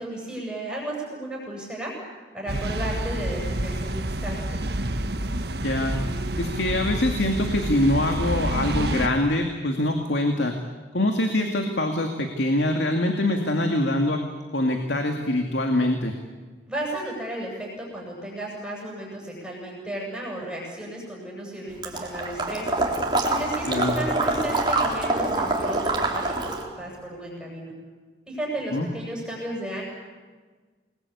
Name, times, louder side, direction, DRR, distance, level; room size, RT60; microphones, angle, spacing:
voice 1, 0.0-1.9 2.3-4.6 16.7-27.7 28.3-29.9, right 1 dB, 5° right, -3 dB, 7.8 m, -34 dB
sound 1, 2.5-9.1, right 1 dB, 65° right, 1.5 m, -28 dB
voice 2, 5.6-6.0 6.4-10.5 10.9-14.2 14.5-16.1 23.7-23.9 28.7-28.9, left 1 dB, 85° left, 4 dB, 2.4 m, -24 dB
Water / Liquid, 21.8-26.7, right 2 dB, 25° right, 3.6 m, -25 dB
29.0 x 21.5 x 8.6 m, 1.4 s
head